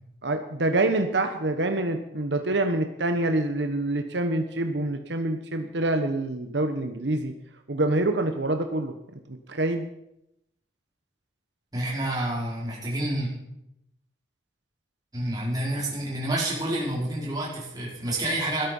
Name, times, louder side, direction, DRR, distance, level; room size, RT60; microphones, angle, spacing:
voice 1, 0.2-7.3 7.7-8.9 9.5-9.8, right 2 dB, 75° right, 6 dB, 1.2 m, -26 dB
voice 2, 11.7-13.3 15.1-18.7, right 1 dB, 20° right, -4 dB, 5.1 m, -28 dB
16.0 x 12.5 x 5.5 m, 0.82 s
head